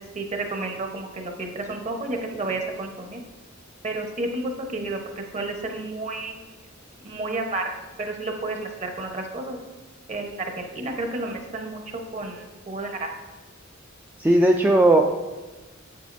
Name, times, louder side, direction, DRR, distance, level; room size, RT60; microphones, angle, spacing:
voice 1, 0.1-3.2 3.8-6.5 7.0-7.7 8.0-9.6 10.1-11.8 12.1-13.1, right 2 dB, 35° right, 3 dB, 0.9 m, -31 dB
voice 2, 14.2-15.0, right 1 dB, 10° right, 1 dB, 0.3 m, -16 dB
8.4 x 8.3 x 2.6 m, 1.2 s
head